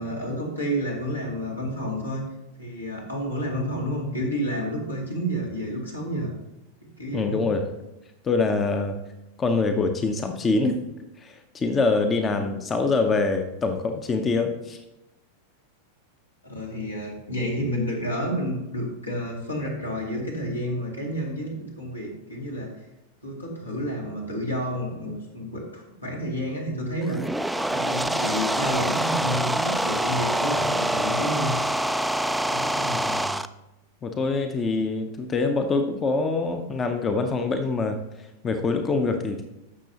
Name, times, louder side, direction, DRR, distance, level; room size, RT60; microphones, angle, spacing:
voice 1, 0.0-2.2 2.6-6.3 7.0-7.5 12.3-12.5 16.4-22.7 23.2-31.5 32.5-33.0, equal, 85° left, -2 dB, 2.3 m, -30 dB
voice 2, 7.1-7.7 8.2-9.0 9.4-10.8 11.2-14.8 32.8-33.4 34.0-39.4, left 3 dB, 20° left, 7 dB, 0.7 m, -25 dB
sound 1, 27.0-33.5, right 1 dB, 5° right, 0.3 m, -25 dB
14.5 x 6.1 x 2.9 m, 0.93 s
figure-of-eight pair, 90°, 0 cm